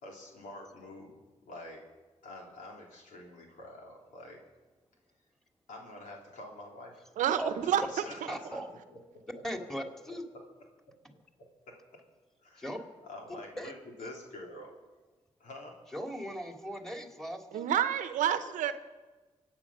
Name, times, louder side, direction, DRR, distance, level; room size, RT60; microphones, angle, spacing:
voice 1, 0.0-1.2 1.5-1.8 2.2-4.4 5.7-7.2 7.6-9.2 10.3-10.4 11.4-12.0 12.4-12.7 13.0-14.8 15.4-15.8, left 1 dB, 85° left, 0 dB, 3.4 m, -47 dB
voice 2, 7.2-7.8 8.2-8.3 17.5-18.7, right 10 dB, 90° right, 11 dB, 0.8 m, -28 dB
voice 3, 8.3-8.7 9.4-10.2 12.6-12.8 13.6-13.7 15.9-17.7, equal, 5° left, 4 dB, 2.8 m, -38 dB
24.5 x 9.1 x 6.2 m, 1.3 s
supercardioid pair, 40°, 13 cm